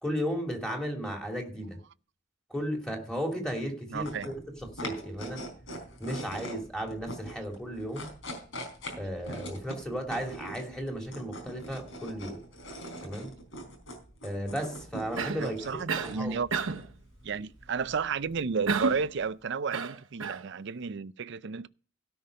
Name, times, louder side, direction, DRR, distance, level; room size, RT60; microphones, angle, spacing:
voice 1, 0.0-1.8 2.5-4.4 4.8-5.4 6.0-8.1 9.0-12.4 13.0-13.3 14.2-16.4, equal, 5° left, 2.8 m, -34 dB
sound 1, 3.9-19.3, equal, 70° left, 4.3 m, -43 dB
voice 2, 3.9-4.3 15.4-16.6 17.2-21.7, right 5 dB, 55° right, 0.5 m, -32 dB
Cough, 15.2-15.5 15.9-16.2 16.5-16.9 18.7-19.1 19.7-20.4, right 4 dB, 75° right, 1.0 m, -31 dB
16.5 x 5.9 x 5.3 m
head